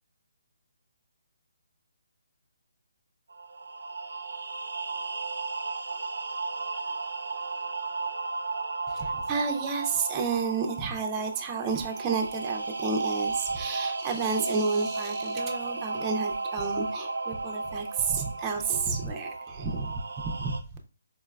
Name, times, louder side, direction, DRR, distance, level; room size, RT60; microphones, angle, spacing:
sound 1, 3.3-20.6, right 3 dB, 90° right, 0.3 m, -34 dB
voice 1, 8.9-19.9 20.2-20.5, right 5 dB, 15° right, 3 dB, 0.4 m, -31 dB
4.4 x 2.1 x 2.3 m, 0.36 s
hypercardioid pair, 170°, 0 cm